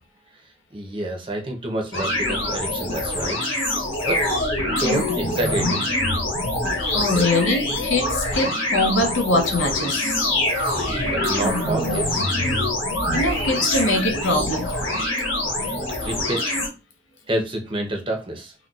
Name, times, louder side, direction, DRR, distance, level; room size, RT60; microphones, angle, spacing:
voice 1, 0.7-3.4 4.1-4.2 4.5-5.8 10.7-12.3 15.6-16.6 17.3-18.5, right 1 dB, 25° right, 0.6 m, -28 dB
sound 1, 1.9-16.7, left 1 dB, 90° left, 1.2 m, -24 dB
voice 2, 6.9-10.2 13.1-14.8, left 2 dB, 75° left, 0.7 m, -22 dB
3.9 x 2.2 x 2.4 m
head